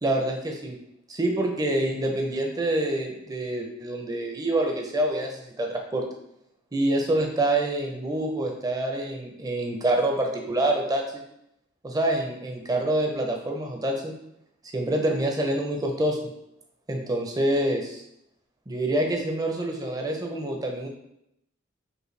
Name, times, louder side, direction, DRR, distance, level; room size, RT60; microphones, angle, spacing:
voice 1, 0.0-0.8 1.1-6.1 6.7-11.2 11.8-14.2 14.7-16.3 16.9-18.0 18.7-20.9, right 1 dB, 20° right, 2 dB, 0.5 m, -26 dB
5.2 x 2.2 x 3.2 m, 0.79 s
head